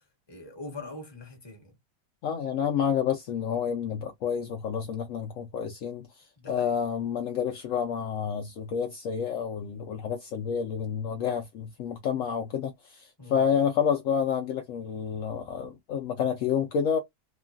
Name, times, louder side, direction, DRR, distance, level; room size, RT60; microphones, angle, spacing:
voice 1, 0.0-1.8 6.4-6.7 13.2-13.5, left 3 dB, 20° left, 0.9 m, -43 dB
voice 2, 2.2-17.0, left 7 dB, 75° left, 0.7 m, -29 dB
3.1 x 2.3 x 2.4 m
omnidirectional pair, 1.9 m